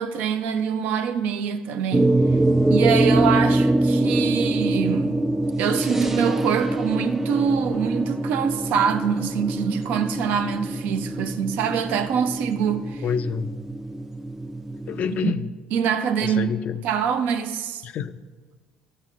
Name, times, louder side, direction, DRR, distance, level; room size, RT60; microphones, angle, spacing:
voice 1, 0.0-2.2 2.7-5.2 5.6-13.0 15.2-15.3 15.7-16.5 16.8-17.8, right 7 dB, 65° right, 0.6 m, -24 dB
sound 1, 1.9-15.3, right 2 dB, 10° right, 0.5 m, -24 dB
voice 2, 13.0-13.5 14.9-15.5 16.2-16.8 17.8-18.2, left 7 dB, 50° left, 0.4 m, -27 dB
14.5 x 6.6 x 2.5 m
hypercardioid pair, 60°, 3 cm